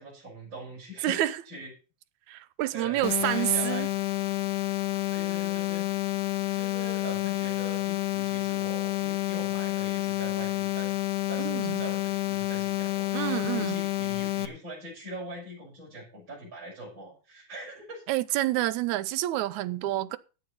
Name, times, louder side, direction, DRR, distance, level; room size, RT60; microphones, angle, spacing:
voice 1, 0.0-1.7 2.7-3.9 5.1-5.9 6.5-11.0 11.3-18.0, right 1 dB, 35° right, 6.9 m, -42 dB
voice 2, 1.0-1.4 2.3-3.9 11.4-11.9 13.1-13.8 18.1-20.2, right 15 dB, 75° right, 2.0 m, -28 dB
sound 1, 3.0-14.5, left 16 dB, 80° left, 2.5 m, -29 dB
12.5 x 8.4 x 5.5 m
omnidirectional pair, 3.6 m